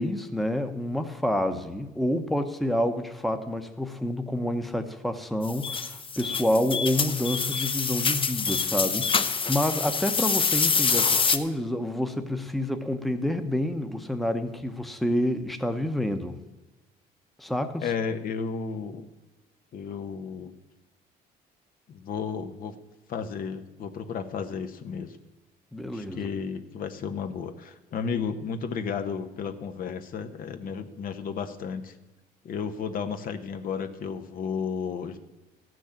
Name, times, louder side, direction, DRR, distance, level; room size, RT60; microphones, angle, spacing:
voice 1, 0.0-16.4 17.4-17.9 25.7-26.3, left 1 dB, ahead, 7 dB, 0.9 m, -28 dB
sound 1, 5.4-11.4, left 5 dB, 30° left, 0.8 m, -26 dB
voice 2, 17.8-19.1 19.7-20.5 21.9-22.7 23.1-25.2 25.9-31.9 32.4-35.2, left 6 dB, 55° left, 8 dB, 1.0 m, -33 dB
14.0 x 6.3 x 8.8 m, 1.1 s
cardioid pair, 110°, 17 cm